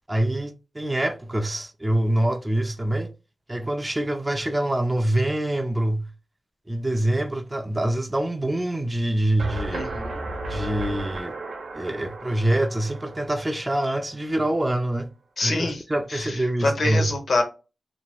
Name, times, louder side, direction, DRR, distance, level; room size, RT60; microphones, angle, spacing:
voice 1, 0.1-3.1 3.5-6.1 6.7-9.9 10.5-11.3 11.7-15.1 15.4-17.1, right 1 dB, 15° right, 0.4 m, -25 dB
sound 1, 9.4-14.3, right 2 dB, 90° right, 0.8 m, -34 dB
voice 2, 9.7-10.2 15.4-15.8 16.1-17.4, left 2 dB, 65° left, 0.9 m, -26 dB
3.0 x 2.8 x 2.3 m
wide cardioid pair, 95°, 0 cm